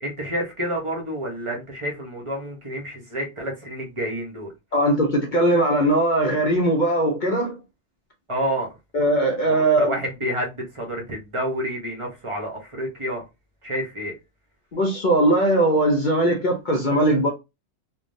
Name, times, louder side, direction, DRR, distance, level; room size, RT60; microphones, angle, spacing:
voice 1, 0.0-4.5 8.3-8.7 9.5-13.2 13.6-14.1, equal, 30° right, 0.7 m, -29 dB
voice 2, 4.7-7.6 8.9-9.9 14.7-17.3, right 1 dB, 50° left, 0.6 m, -20 dB
3.4 x 2.2 x 2.6 m
omnidirectional pair, 1.3 m